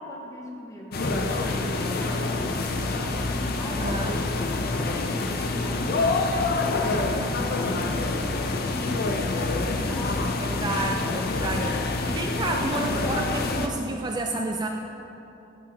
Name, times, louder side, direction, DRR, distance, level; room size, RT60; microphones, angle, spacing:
voice 1, 0.0-10.4, left 1 dB, 15° left, -1 dB, 0.9 m, -41 dB
sound 1, 0.9-13.7, left 3 dB, 55° left, 0.5 m, -26 dB
voice 2, 3.8-4.1 7.7-8.4 10.4-14.7, right 2 dB, 20° right, 2 dB, 0.3 m, -31 dB
11.5 x 6.2 x 2.9 m, 2.8 s
head